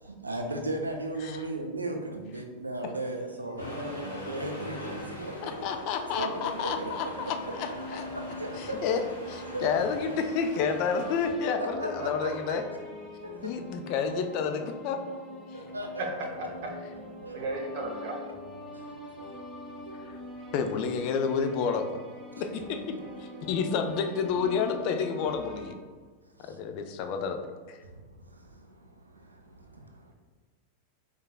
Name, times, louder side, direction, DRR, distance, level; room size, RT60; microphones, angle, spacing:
voice 1, 0.0-7.3 8.1-9.0 9.5-9.9 11.6-12.6 13.2-13.6 15.5-16.0 17.2-17.4 18.7-20.1 26.3-26.6 27.8-30.1, right 2 dB, 80° right, 3 dB, 0.3 m, -37 dB
Accelerating revving vroom, 3.6-11.3, left 1 dB, 80° left, 0.9 m, -42 dB
voice 2, 5.4-8.0 8.6-9.0 9.3-12.6 13.4-15.0 20.1-20.2 20.5-21.9 22.4-22.8 23.2-25.8 26.5-27.4 27.7-27.8, left 6 dB, 45° left, 6 dB, 0.3 m, -30 dB
sound 1, 6.1-25.7, left 1 dB, 10° left, 1.1 m, -43 dB
voice 3, 17.3-18.1, right 3 dB, 45° right, 0 dB, 0.7 m, -34 dB
4.5 x 2.3 x 2.2 m, 1.5 s
figure-of-eight pair, 90°, 0 cm